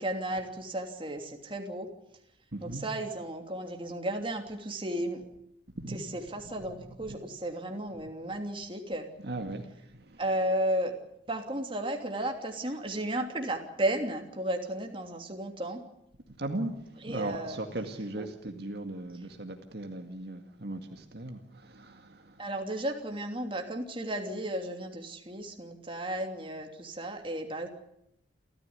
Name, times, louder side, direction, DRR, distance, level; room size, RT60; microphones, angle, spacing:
voice 1, 0.0-1.9 2.6-5.2 5.9-9.1 10.2-11.0 11.3-15.8 17.0-17.6 18.2-18.3 22.4-27.7, right 1 dB, 30° right, 4 dB, 3.0 m, -34 dB
voice 2, 2.5-2.8 5.8-6.0 7.1-7.2 9.2-9.7 10.1-10.2 16.4-16.7 17.1-22.3, right 2 dB, 60° right, 5 dB, 2.0 m, -37 dB
28.5 x 14.0 x 9.7 m, 0.78 s
head